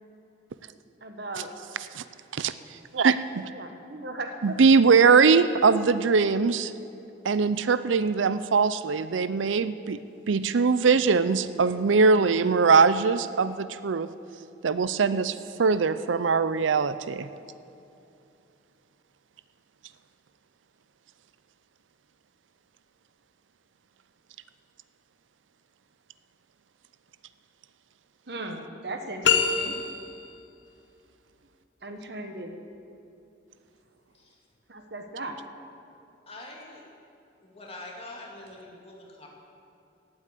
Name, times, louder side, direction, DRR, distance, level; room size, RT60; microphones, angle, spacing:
voice 1, 1.0-1.5 3.5-4.7 28.3-29.8 31.8-32.5 34.7-35.4, right 2 dB, 60° right, 5 dB, 1.4 m, -37 dB
voice 2, 2.9-3.5 4.4-6.7 7.2-10.0 10.3-14.1 14.6-17.3, right 5 dB, 85° right, 14 dB, 0.5 m, -21 dB
sound 1, 29.2-30.3, left 6 dB, 70° left, 1.0 m, -24 dB
voice 3, 36.3-36.8 37.4-39.3, left 2 dB, 30° left, -1 dB, 2.5 m, -44 dB
17.5 x 8.7 x 8.3 m, 2.7 s
head